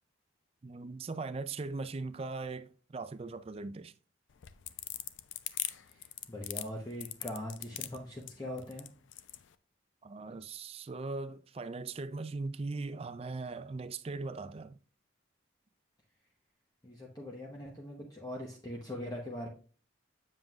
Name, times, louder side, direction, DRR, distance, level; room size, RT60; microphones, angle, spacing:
voice 1, 0.6-3.9 10.0-14.8, right 3 dB, 30° right, 0.4 m, -39 dB
sound 1, 4.3-9.4, left 14 dB, 70° left, 0.4 m, -40 dB
voice 2, 5.9-8.9 16.8-19.5, left 1 dB, 20° left, 0.9 m, -41 dB
7.5 x 7.3 x 2.4 m
head